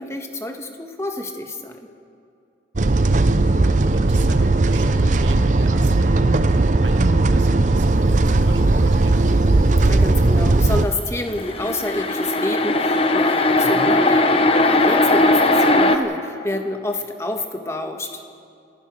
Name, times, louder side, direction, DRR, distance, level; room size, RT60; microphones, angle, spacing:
voice 1, 0.0-1.9 9.8-18.3, left 2 dB, 15° left, 4 dB, 1.5 m, -28 dB
sound 1, 2.8-10.9, right 2 dB, 40° right, 0.6 m, -17 dB
voice 2, 2.8-3.4 3.9-9.4 13.6-13.9, right 1 dB, 85° right, 4 dB, 2.0 m, -34 dB
sound 2, 11.2-16.0, left 2 dB, 30° left, 1.0 m, -18 dB
28.0 x 15.0 x 6.4 m, 2.5 s
head